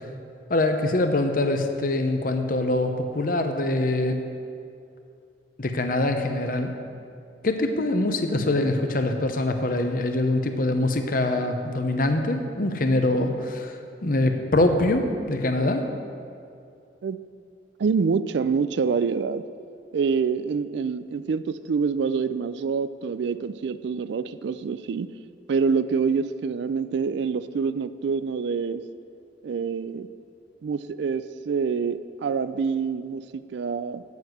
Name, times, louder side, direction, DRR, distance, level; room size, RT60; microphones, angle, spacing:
voice 1, 0.5-4.2 5.6-6.7 7.4-15.8, left 2 dB, 50° left, 6 dB, 0.8 m, -24 dB
voice 2, 17.8-19.4 19.9-25.1 25.5-28.8 29.4-30.1 30.6-34.0, right 5 dB, 70° right, 14 dB, 0.3 m, -26 dB
7.8 x 7.2 x 7.9 m, 2.4 s
head